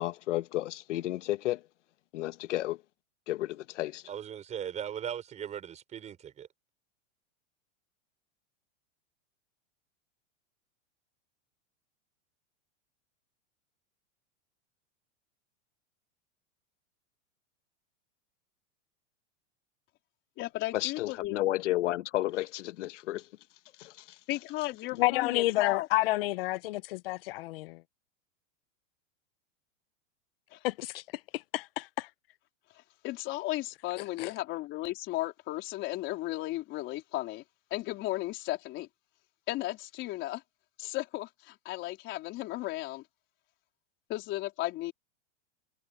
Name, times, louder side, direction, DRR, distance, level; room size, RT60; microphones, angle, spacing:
voice 1, 0.0-1.6 2.1-2.8 3.3-4.0 20.7-23.3 23.8-24.2, left 15 dB, 75° left, 1.4 m, -32 dB
voice 2, 4.1-6.5, right 9 dB, 20° right, 5.7 m, -38 dB
voice 3, 20.4-21.4 24.3-25.9 30.5-30.6 33.0-37.4 37.7-38.9 39.5-40.4 40.8-43.0 44.1-44.9, left 17 dB, 30° left, 4.1 m, -35 dB
voice 4, 25.0-27.8 30.6-31.0 31.5-32.1 34.2-34.3, left 18 dB, 50° left, 0.9 m, -29 dB
supercardioid pair, 165°, 37 cm